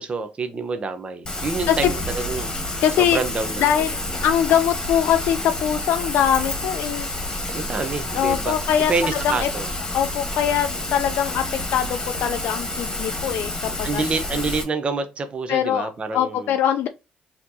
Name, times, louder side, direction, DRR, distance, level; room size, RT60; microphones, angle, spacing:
voice 1, 0.0-2.5 3.0-3.7 7.5-8.6 8.9-9.7 13.8-16.5, right 4 dB, 35° right, 0.6 m, -27 dB
Rain, 1.2-14.6, left 1 dB, 20° left, 1.2 m, -29 dB
voice 2, 2.8-3.2 3.6-7.1 8.1-8.9 9.2-9.5 9.9-11.4 11.7-14.0 15.5-16.9, left 9 dB, 75° left, 0.3 m, -22 dB
4.2 x 2.8 x 2.7 m
cardioid pair, 95°, 3 cm